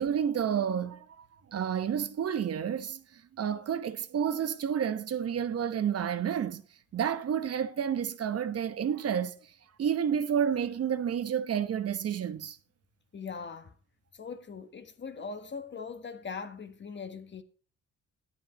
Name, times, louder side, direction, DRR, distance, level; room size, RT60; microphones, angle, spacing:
voice 1, 0.0-6.6 6.9-9.4 9.8-12.6, right 8 dB, 55° right, 1.0 m, -30 dB
voice 2, 13.1-13.7 14.1-17.4, left 5 dB, 40° left, 1.5 m, -41 dB
11.0 x 8.8 x 4.1 m
cardioid pair, 90°, 30 cm